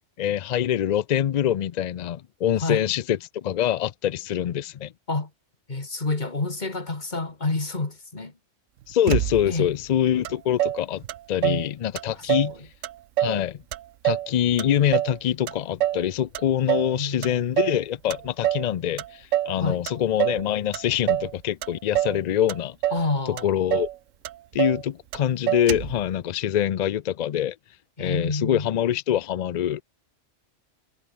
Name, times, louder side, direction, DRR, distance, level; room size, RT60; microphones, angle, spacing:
voice 1, 0.2-4.9 8.9-11.0 11.3-12.5 13.2-13.6 14.0-22.8 23.4-23.9 24.5-27.6 28.0-29.8, left 10 dB, 70° left, 0.4 m, -25 dB
voice 2, 5.7-8.3 9.5-9.7 11.4-11.6 12.1-12.3 16.9-17.4 19.6-19.9 22.9-23.6 28.0-28.7, left 3 dB, 35° left, 2.5 m, -28 dB
Motor vehicle (road), 9.1-9.7 10.2-10.3 10.6-11.7 12.0-12.6 12.8-13.4 13.7-15.2 15.5-16.1 16.3-16.9 17.2-17.8 18.1-18.7 19.0-19.6 19.9-20.4 20.7-21.3 21.6-22.2 22.5-23.1 23.4-23.5 23.7-24.0 24.2-24.8 25.1-25.2 25.5-26.0, right 13 dB, 90° right, 1.0 m, -26 dB
omnidirectional pair, 1.3 m